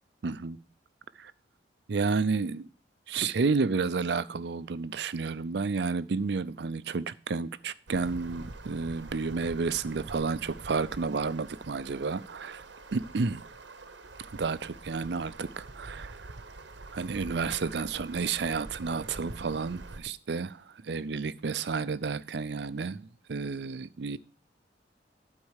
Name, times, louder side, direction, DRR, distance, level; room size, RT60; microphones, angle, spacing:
voice 1, 0.2-0.6 1.2-1.3 1.9-2.7 3.1-12.7 12.9-13.4 14.4-16.4 16.9-24.2, right 4 dB, 65° right, 0.5 m, -31 dB
sound 1, 7.9-20.0, right 2 dB, 80° right, 1.0 m, -46 dB
12.0 x 4.5 x 6.4 m
head